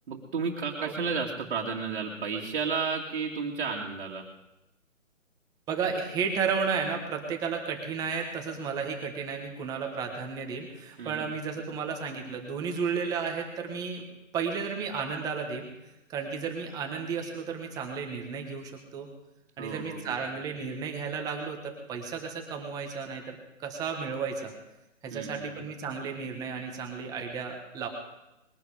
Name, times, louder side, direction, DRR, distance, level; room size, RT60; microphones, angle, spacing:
voice 1, 0.1-4.2 11.0-11.3 19.6-20.2 25.1-25.6, right 5 dB, 45° right, -1 dB, 2.3 m, -32 dB
voice 2, 5.7-15.7 16.1-19.1 19.6-24.5 25.0-27.9, right 5 dB, 10° right, 3 dB, 1.4 m, -33 dB
21.5 x 11.5 x 5.0 m, 0.94 s
hypercardioid pair, 150°, 39 cm